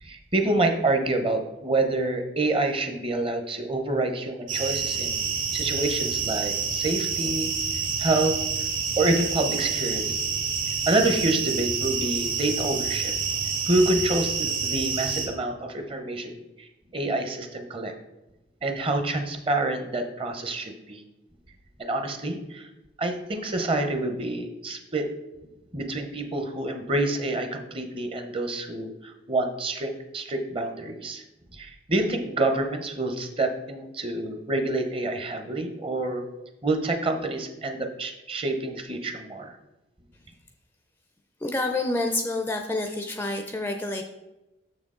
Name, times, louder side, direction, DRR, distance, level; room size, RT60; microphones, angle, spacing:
voice 1, 0.0-8.7 9.0-10.1 10.9-13.1 13.7-17.9 18.6-21.0 21.8-22.7 23.0-25.1 25.7-31.2 31.5-36.2 36.6-39.6, right 2 dB, 30° right, 5 dB, 0.7 m, -27 dB
sound 1, 4.5-15.3, right 5 dB, 85° right, 1.3 m, -28 dB
voice 2, 41.4-44.0, left 2 dB, 10° left, 4 dB, 0.4 m, -28 dB
6.9 x 6.2 x 3.7 m, 1.0 s
head